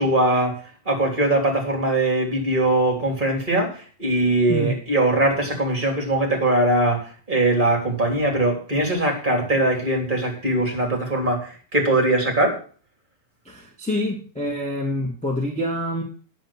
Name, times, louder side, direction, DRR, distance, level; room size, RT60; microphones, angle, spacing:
voice 1, 0.0-12.6, right 1 dB, 15° right, 3.4 m, -21 dB
voice 2, 13.4-16.0, left 1 dB, 5° left, 1.3 m, -26 dB
9.3 x 7.8 x 7.4 m
omnidirectional pair, 3.5 m